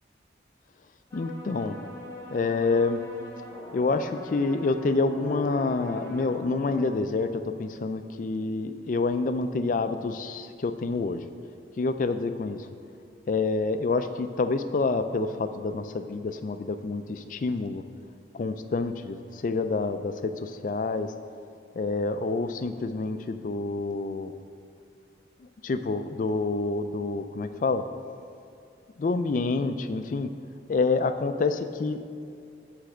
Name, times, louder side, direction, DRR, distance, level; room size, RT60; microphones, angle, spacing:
voice 1, 1.1-1.8 2.3-3.0 3.7-11.2 11.8-12.7 13.3-17.8 18.3-21.1 21.8-24.3 25.6-27.8 29.0-30.3 30.7-32.0, left 3 dB, 45° left, 10 dB, 0.3 m, -27 dB
Distorted Celli, 1.1-6.9, left 1 dB, 15° left, 0.9 m, -42 dB
9.8 x 3.3 x 6.3 m, 2.5 s
head